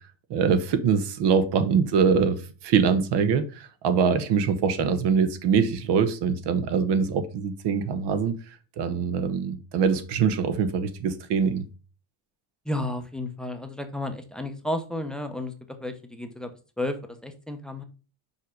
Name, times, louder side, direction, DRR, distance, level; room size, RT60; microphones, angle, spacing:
voice 1, 0.3-8.3 8.8-11.6, right 6 dB, 55° right, 1.1 m, -23 dB
voice 2, 12.6-16.5 16.8-17.8, left 1 dB, ahead, 0.7 m, -32 dB
5.6 x 4.9 x 5.1 m
cardioid pair, 145°, 50 cm